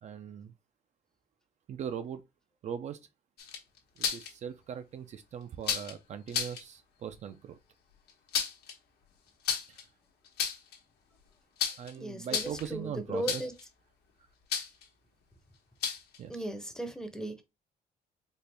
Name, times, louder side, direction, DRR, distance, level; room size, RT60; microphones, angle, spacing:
voice 1, 0.0-0.5 1.7-2.2 2.6-3.0 4.0-7.6 9.7-9.8 11.8-13.4 16.2-16.3, right 8 dB, 45° right, 0.4 m, -40 dB
sound 1, 3.4-4.3 5.6-5.9 6.3-6.6 8.1-8.7 9.4-9.8 10.2-10.8 11.6-11.9 12.2-12.7 13.3-13.6 14.5-14.8 15.8-16.2, left 7 dB, 85° left, 1.1 m, -32 dB
voice 2, 12.0-13.5 16.3-17.4, right 1 dB, 5° left, 0.6 m, -37 dB
4.3 x 2.4 x 3.3 m
cardioid pair, 150°, 16 cm